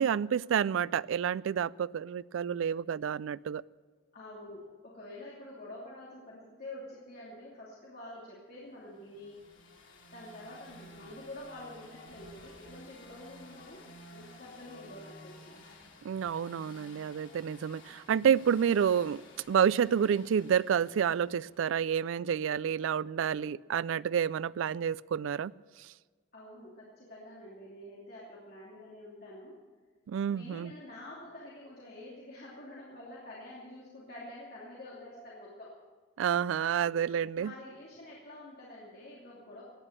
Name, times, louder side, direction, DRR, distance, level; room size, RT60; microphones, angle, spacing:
voice 1, 0.0-3.6 16.0-19.2 19.5-25.5 30.1-30.7 36.2-37.5, right 8 dB, 75° right, 20 dB, 0.3 m, -29 dB
voice 2, 4.1-9.4 10.1-13.8 14.1-15.5 26.3-29.6 30.3-35.8 37.4-39.6, left 1 dB, 50° left, -6 dB, 2.8 m, -47 dB
sound 1, 8.9-21.8, left 2 dB, 70° left, 2.7 m, -54 dB
17.0 x 10.0 x 6.7 m, 1.5 s
head